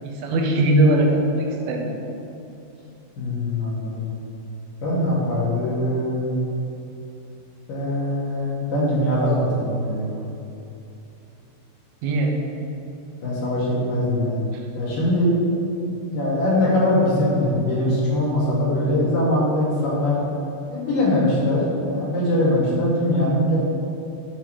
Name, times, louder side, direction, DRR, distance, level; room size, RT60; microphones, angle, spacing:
voice 1, 0.0-2.0 12.0-12.4, right 1 dB, 85° right, 0 dB, 3.4 m, -20 dB
voice 2, 3.2-4.1 4.8-6.3 7.7-10.1 13.2-14.4 14.7-15.3 15.8-20.2 20.7-23.6, left 1 dB, 60° left, -7 dB, 2.6 m, -22 dB
10.5 x 7.0 x 3.0 m, 2.8 s
omnidirectional pair, 5.6 m